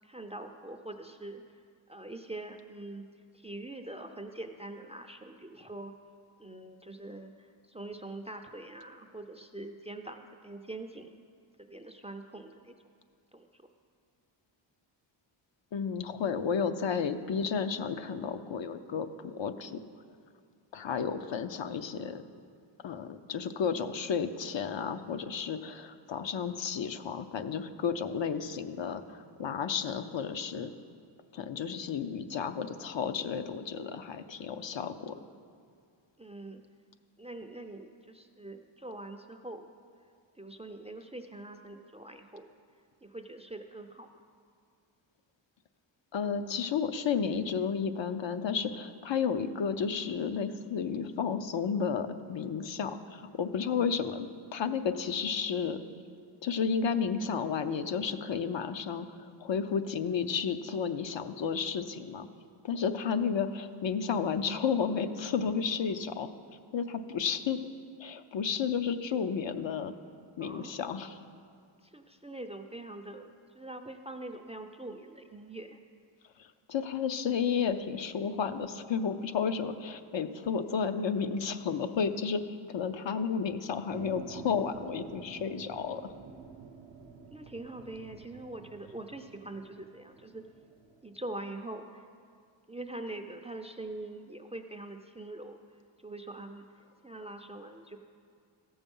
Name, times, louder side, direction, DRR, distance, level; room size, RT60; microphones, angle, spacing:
voice 1, 0.0-1.4 1.9-3.1 3.3-5.9 6.4-11.2 11.6-12.7 13.3-13.6 36.2-36.6 37.2-39.7 40.4-42.5 43.0-44.1 70.4-70.7 71.8-73.3 73.5-75.8 87.3-90.5 91.0-92.1 92.7-95.6 96.0-96.6 97.0-98.0, right 2 dB, 15° right, 6 dB, 0.4 m, -43 dB
voice 2, 15.7-19.8 20.7-22.2 22.8-30.7 31.3-35.2 46.1-55.8 56.4-62.3 62.6-66.3 66.7-67.6 68.0-69.9 70.4-71.2 76.4-82.4 82.7-86.1, left 6 dB, 65° left, 9 dB, 0.6 m, -32 dB
sound 1, 83.9-91.4, right 5 dB, 65° right, 0.8 m, -49 dB
14.0 x 7.1 x 5.4 m, 2.2 s
wide cardioid pair, 115°, 49 cm